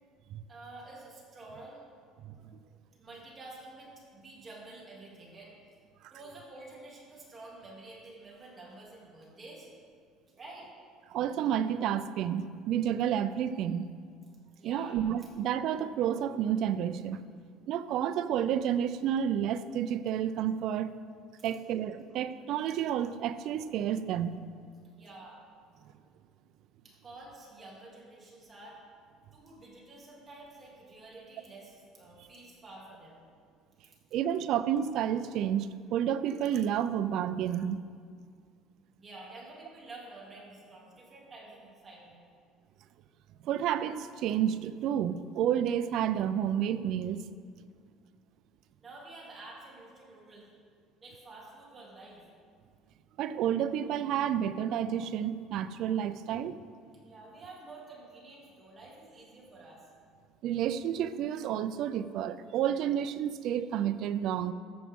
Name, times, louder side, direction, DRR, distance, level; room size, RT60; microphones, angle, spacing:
voice 1, 0.5-1.9 3.0-5.6 6.1-9.7 10.4-10.7 14.6-15.0 21.4-21.5 25.0-25.4 26.8-28.8 29.3-33.2 39.0-42.3 48.8-50.5 51.0-52.3 57.0-59.9, right 2 dB, 25° right, -4 dB, 2.6 m, -49 dB
voice 2, 11.1-13.9 14.6-17.2 17.7-20.9 21.4-24.4 34.1-37.8 43.4-47.2 53.2-56.6 60.4-64.5, right 9 dB, 60° right, 13 dB, 0.4 m, -30 dB
13.5 x 7.3 x 3.6 m, 2.1 s
cardioid pair, 135°, 0 cm